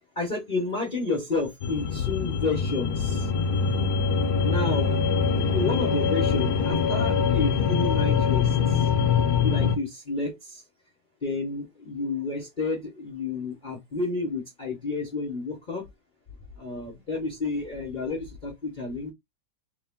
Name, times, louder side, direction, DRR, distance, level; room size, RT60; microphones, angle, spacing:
voice 1, 0.1-3.3 4.4-4.9 5.5-8.9 9.4-10.6 11.2-15.8 16.6-19.1, left 3 dB, 30° left, 0.9 m, -30 dB
sound 1, 1.6-9.8, left 6 dB, 60° left, 1.2 m, -24 dB
3.5 x 3.2 x 3.6 m
omnidirectional pair, 2.2 m